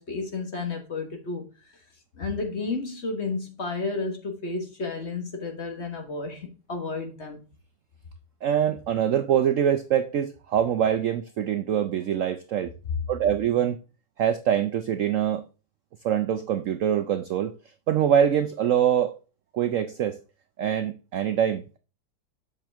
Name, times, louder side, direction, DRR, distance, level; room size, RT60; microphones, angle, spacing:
voice 1, 0.0-1.4 2.1-7.5, left 3 dB, 40° left, 1.5 m, -32 dB
voice 2, 8.4-12.7 13.1-13.8 14.2-15.4 16.0-17.5 17.9-19.1 19.5-20.2 20.6-21.8, right 9 dB, 80° right, 0.7 m, -24 dB
7.6 x 5.8 x 3.4 m
omnidirectional pair, 2.0 m